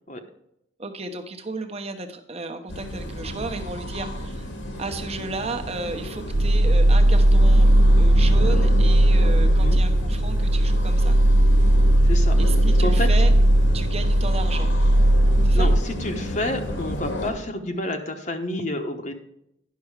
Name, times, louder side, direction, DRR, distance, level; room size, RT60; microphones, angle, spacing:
voice 1, 0.8-4.5 4.8-7.7 8.0-11.2 12.4-13.3 13.7-14.7 15.4-15.7, right 3 dB, 30° right, 5 dB, 1.1 m, -33 dB
sound 1, 2.7-17.3, left 1 dB, 85° left, 2.1 m, -32 dB
sound 2, 6.3-15.8, right 1 dB, 70° right, 0.6 m, -17 dB
voice 2, 9.4-9.8 12.1-12.4 12.8-13.1 15.5-19.1, left 1 dB, 40° left, 4 dB, 1.0 m, -29 dB
10.5 x 6.2 x 4.7 m, 0.79 s
head